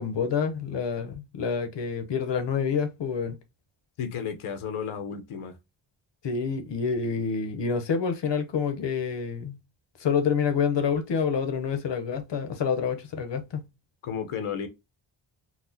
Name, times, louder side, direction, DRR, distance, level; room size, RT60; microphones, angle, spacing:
voice 1, 0.0-3.4 6.2-9.6 10.0-13.6, left 6 dB, 60° left, 0.9 m, -27 dB
voice 2, 4.0-5.6 14.0-14.7, left 7 dB, 85° left, 1.0 m, -33 dB
4.1 x 2.4 x 2.7 m
wide cardioid pair, 115°, 49 cm